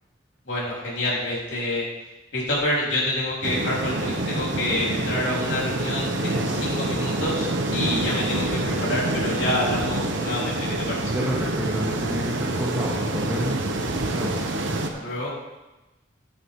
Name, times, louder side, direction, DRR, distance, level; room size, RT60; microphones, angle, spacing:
voice 1, 0.5-1.9 2.3-11.0 14.9-15.3, left 1 dB, 75° left, -6 dB, 3.8 m, -27 dB
sound 1, 3.4-14.9, right 2 dB, 80° right, 1.0 m, -27 dB
voice 2, 11.1-13.7 14.1-14.4, equal, 10° right, -7 dB, 2.0 m, -29 dB
11.0 x 9.5 x 3.7 m, 1.1 s
head